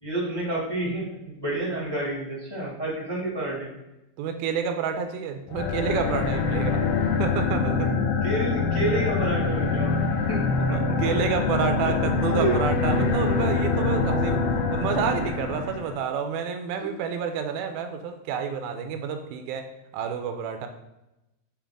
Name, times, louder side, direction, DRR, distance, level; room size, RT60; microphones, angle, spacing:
voice 1, 0.0-3.7 8.2-10.9 12.3-12.5, right 2 dB, 15° left, -5 dB, 1.0 m, -29 dB
voice 2, 4.2-6.8 7.2-7.9 10.7-14.4 14.7-20.7, right 7 dB, 85° right, 6 dB, 2.5 m, -29 dB
sound 1, 5.5-16.0, left 4 dB, 75° left, 2.1 m, -25 dB
7.1 x 5.3 x 3.7 m, 0.93 s
omnidirectional pair, 4.3 m